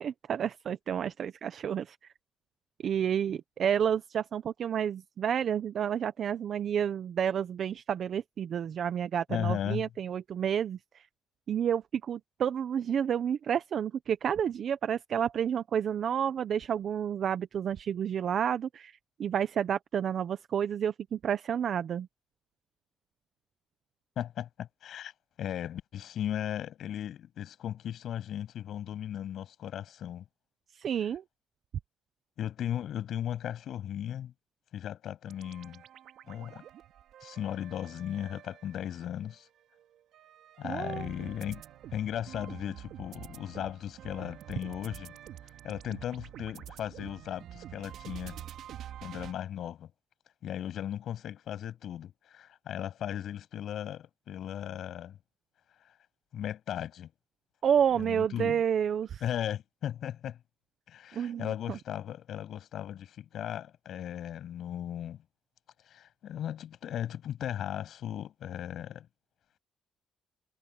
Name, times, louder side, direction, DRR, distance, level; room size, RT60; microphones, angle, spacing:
voice 1, 0.0-2.0 2.8-11.0 11.5-22.1 30.7-31.2 40.6-41.1 57.6-59.2 61.1-61.8, right 8 dB, 60° right, 0.9 m, -30 dB
voice 2, 9.3-9.9 24.2-25.1 25.4-30.2 32.4-34.3 34.7-35.8 36.3-36.6 37.2-39.5 40.6-41.6 41.9-45.1 45.6-48.4 49.0-49.9 50.4-55.2 56.3-57.1 58.0-58.6 59.2-60.4 60.9-65.2 65.9-69.1, left 10 dB, 70° left, 7.5 m, -36 dB
sound 1, 35.3-39.4 39.8-49.3, right 11 dB, 75° right, 3.2 m, -47 dB
cardioid pair, 90°, 0 cm